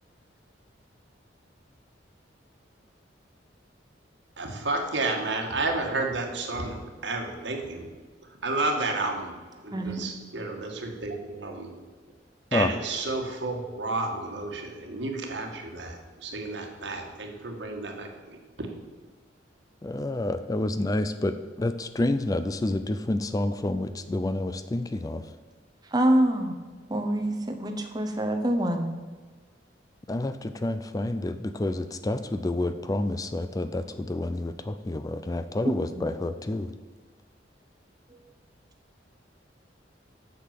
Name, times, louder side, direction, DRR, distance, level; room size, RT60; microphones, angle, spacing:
voice 1, 4.4-7.9 8.4-9.3 9.6-11.7 12.5-18.7, right 2 dB, 70° right, 2 dB, 1.8 m, -31 dB
voice 2, 19.8-25.2 30.1-36.7, left 2 dB, 20° left, 11 dB, 0.4 m, -29 dB
voice 3, 25.9-26.5 26.9-28.9 36.0-36.1, right 1 dB, 20° right, 5 dB, 0.8 m, -25 dB
8.2 x 6.7 x 7.5 m, 1.4 s
head